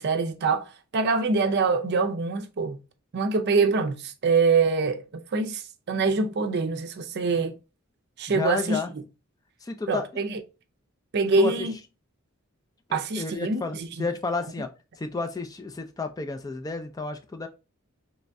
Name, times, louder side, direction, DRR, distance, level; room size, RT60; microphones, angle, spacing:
voice 1, 0.0-2.8 3.1-5.6 5.9-7.6 8.2-8.8 9.9-10.4 11.1-11.7 12.9-14.1, right 4 dB, 55° right, 0.5 m, -25 dB
voice 2, 8.3-8.9 9.6-10.2 11.4-11.7 12.9-14.7 15.0-17.5, left 4 dB, 20° left, 0.3 m, -31 dB
3.3 x 3.1 x 2.6 m
head